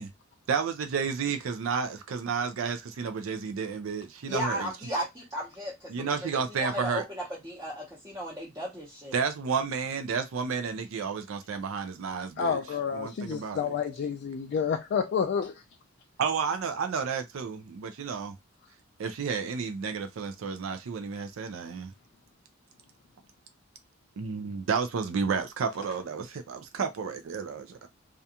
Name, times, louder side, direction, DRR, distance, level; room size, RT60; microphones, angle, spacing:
voice 1, 0.5-4.7 5.9-7.0 9.1-12.6 12.9-13.7 16.2-18.4 19.0-21.9 24.2-27.9, right 5 dB, 90° right, 0.4 m, -31 dB
voice 2, 4.3-9.2, equal, 15° right, 0.7 m, -35 dB
voice 3, 12.4-15.6, left 6 dB, 55° left, 0.3 m, -29 dB
2.4 x 2.2 x 2.7 m
head